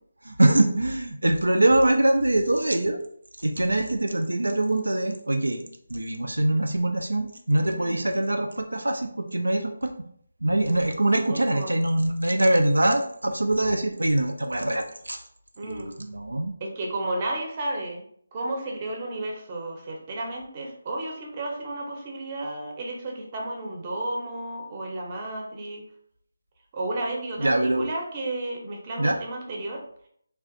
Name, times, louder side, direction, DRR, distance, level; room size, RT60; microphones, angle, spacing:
voice 1, 0.2-3.0 3.4-5.6 5.9-9.9 10.4-15.2 15.6-16.5 27.4-27.9 29.0-29.2, right 1 dB, 85° right, 4 dB, 0.3 m, -23 dB
voice 2, 7.6-8.0 11.2-11.8 15.6-15.9 16.6-18.0 18.3-25.8 26.7-29.8, right 2 dB, 30° right, 0 dB, 0.7 m, -32 dB
3.3 x 2.4 x 2.5 m, 0.64 s
figure-of-eight pair, 155°, 0 cm